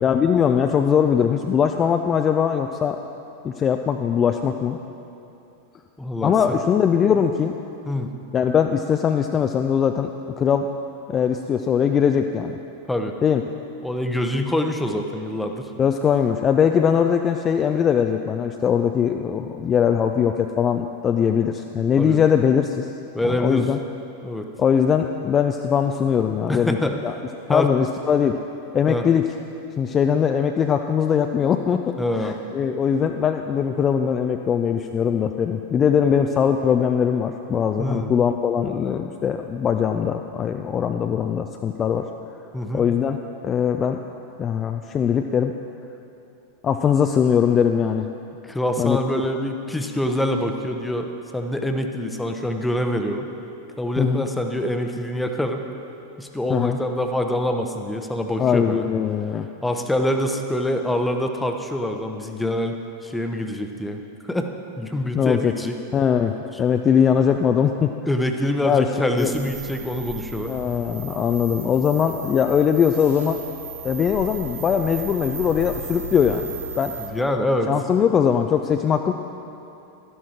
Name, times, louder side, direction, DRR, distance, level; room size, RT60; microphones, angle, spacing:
voice 1, 0.0-3.0 3.4-4.8 6.2-7.5 8.3-10.1 10.4-10.7 11.1-12.6 13.2-13.4 15.8-22.9 23.2-23.8 24.6-26.8 27.0-27.1 27.5-28.4 28.7-29.2 29.8-42.1 42.7-43.2 43.4-44.0 44.4-45.5 46.6-48.1 48.8-49.0 54.0-54.2 56.5-56.8 58.4-59.5 65.1-65.5 65.9-67.9 68.6-69.3 70.5-73.4 73.8-77.0 77.7-79.1, left 7 dB, 25° left, 5 dB, 0.4 m, -21 dB
voice 2, 6.0-6.3 7.9-8.1 12.9-13.1 13.8-15.7 22.0-22.2 23.1-23.6 24.2-24.5 26.5-26.9 27.5-27.7 28.9-29.0 32.0-32.4 37.8-38.1 42.5-42.9 48.4-53.3 53.8-55.6 56.2-58.9 59.6-64.0 64.3-64.5 64.8-65.8 68.1-70.5 77.1-77.7, left 1 dB, 5° left, 5 dB, 0.8 m, -25 dB
sound 1, 69.2-77.1, right 5 dB, 65° right, 1.7 m, -36 dB
12.5 x 11.0 x 4.4 m, 2.8 s
figure-of-eight pair, 90°, 0 cm